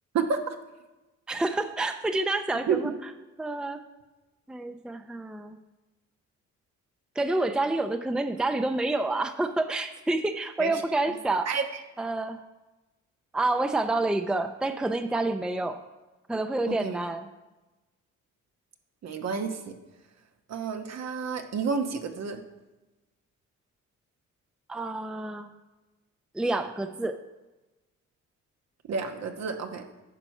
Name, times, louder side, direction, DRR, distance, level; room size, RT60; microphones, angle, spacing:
voice 1, 0.1-0.6 2.7-2.8 10.6-10.7 11.0-11.1 11.4-11.6 16.7-17.0 19.0-19.7 20.5-22.4 28.9-29.8, right 5 dB, 60° right, 5 dB, 1.1 m, -30 dB
voice 2, 1.3-2.9 3.4-3.8 4.5-5.6 7.2-11.5 12.0-12.4 13.3-15.8 16.3-17.3 24.7-25.5 26.3-27.2, right 2 dB, 5° right, 8 dB, 0.5 m, -28 dB
9.8 x 5.9 x 5.5 m, 1.1 s
cardioid pair, 90°, 30 cm